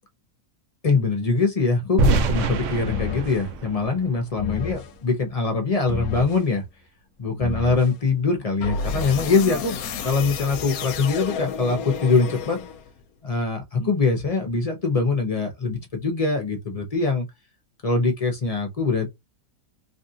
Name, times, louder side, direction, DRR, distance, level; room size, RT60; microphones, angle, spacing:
voice 1, 0.8-6.6 7.2-12.6 13.2-17.3 17.8-19.1, left 4 dB, 35° left, 0.6 m, -23 dB
sound 1, 2.0-5.0, right 2 dB, 65° right, 0.8 m, -25 dB
sound 2, 2.9-3.4 4.4-4.9 5.9-6.4 7.4-8.0 8.6-13.0, left 7 dB, 75° left, 1.0 m, -31 dB
3.4 x 2.4 x 2.7 m
omnidirectional pair, 1.6 m